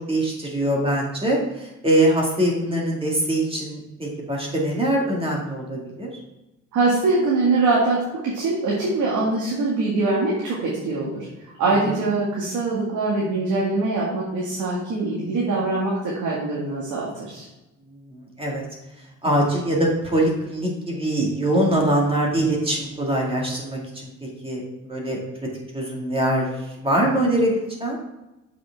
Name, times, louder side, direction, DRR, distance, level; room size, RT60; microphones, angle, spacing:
voice 1, 0.1-6.1 11.8-12.0 17.9-18.6 19.0-25.2 25.7-28.0, right 1 dB, 20° right, -2 dB, 2.1 m, -23 dB
voice 2, 6.7-11.2 11.6-17.5, right 3 dB, 75° right, -5 dB, 2.0 m, -23 dB
7.3 x 6.1 x 3.5 m, 0.99 s
cardioid pair, 90°, 30 cm